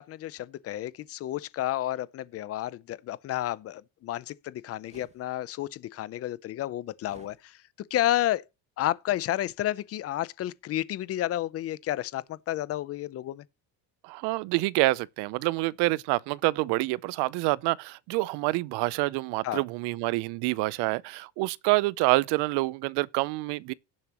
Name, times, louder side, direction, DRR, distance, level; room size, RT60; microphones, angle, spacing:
voice 1, 0.0-7.6 7.9-8.4 8.8-13.4 19.4-19.6, left 13 dB, 35° left, 0.6 m, -31 dB
sound 1, 4.8-5.2 7.0-7.4, right 4 dB, 15° right, 1.5 m, -53 dB
voice 2, 14.0-23.7, right 21 dB, 80° right, 0.7 m, -27 dB
17.5 x 7.2 x 2.9 m
cardioid pair, 175°, 39 cm